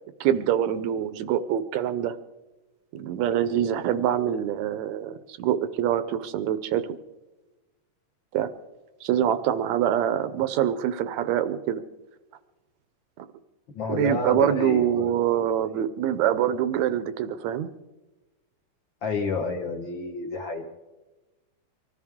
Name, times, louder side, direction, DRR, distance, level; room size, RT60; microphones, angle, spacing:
voice 1, 0.2-2.1 2.9-6.8 8.3-8.5 9.0-11.8 13.2-13.3 13.9-17.7, right 10 dB, 75° right, 12 dB, 1.7 m, -25 dB
voice 2, 13.7-15.1 19.0-20.6, left 4 dB, 55° left, 4 dB, 1.3 m, -30 dB
24.5 x 14.5 x 3.6 m, 1.1 s
omnidirectional pair, 3.8 m